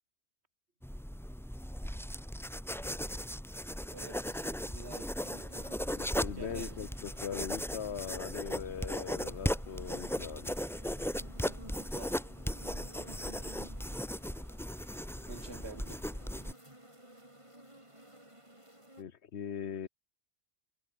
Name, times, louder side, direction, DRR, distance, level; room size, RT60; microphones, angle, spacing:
sound 1, 0.8-16.5, equal, ahead, 1.5 m, -37 dB
voice 1, 3.9-5.1 6.4-6.9 11.9-12.2 15.3-16.0, right 3 dB, 80° right, 2.7 m, -47 dB
sound 2, 5.2-19.0, right 1 dB, 30° right, 5.9 m, -56 dB
voice 2, 6.0-10.5 19.0-19.9, left 8 dB, 80° left, 1.3 m, -40 dB
omnidirectional pair, 1.1 m